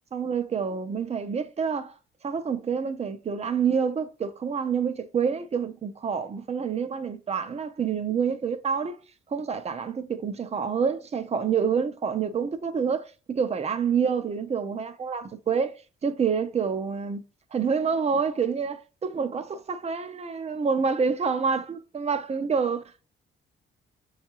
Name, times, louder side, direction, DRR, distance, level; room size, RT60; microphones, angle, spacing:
voice 1, 0.1-1.9 2.2-9.0 9.3-15.8 16.0-17.2 17.5-23.1, right 6 dB, 35° right, 0.6 m, -27 dB
6.3 x 2.4 x 2.9 m
cardioid pair, 90°, 20 cm